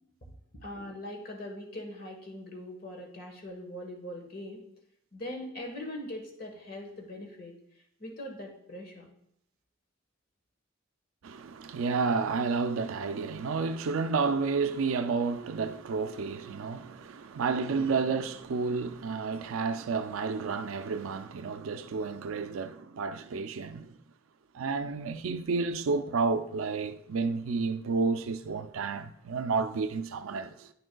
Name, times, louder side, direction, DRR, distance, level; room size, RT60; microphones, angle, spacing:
voice 1, 0.6-4.6 5.1-7.6 8.0-9.1, left 1 dB, 45° left, 1.3 m, -41 dB
voice 2, 11.2-24.0 24.5-30.7, right 4 dB, 85° right, 0.4 m, -31 dB
9.8 x 6.2 x 2.3 m
head